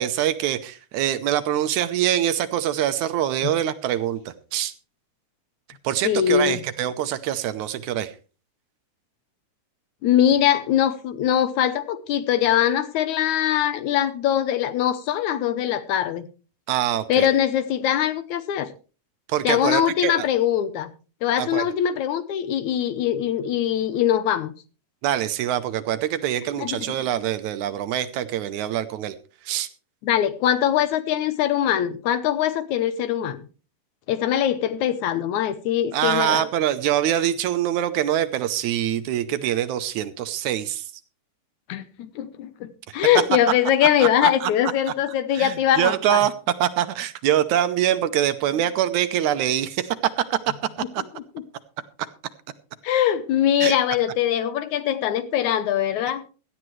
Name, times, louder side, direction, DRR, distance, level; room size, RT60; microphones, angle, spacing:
voice 1, 0.0-4.7 5.8-8.1 16.7-17.3 19.3-20.3 21.4-21.6 25.0-29.2 29.5-29.7 35.9-40.9 44.0-44.5 45.3-50.5 50.9-51.0 53.6-53.8, right 11 dB, 75° right, 12 dB, 2.0 m, -24 dB
voice 2, 6.0-6.6 10.0-16.2 17.1-18.7 19.4-20.9 21.2-24.5 26.6-26.9 30.0-33.4 34.1-36.4 41.7-46.2 52.8-56.2, left 10 dB, 75° left, 13 dB, 2.1 m, -22 dB
17.0 x 12.0 x 3.2 m, 0.35 s
omnidirectional pair, 3.7 m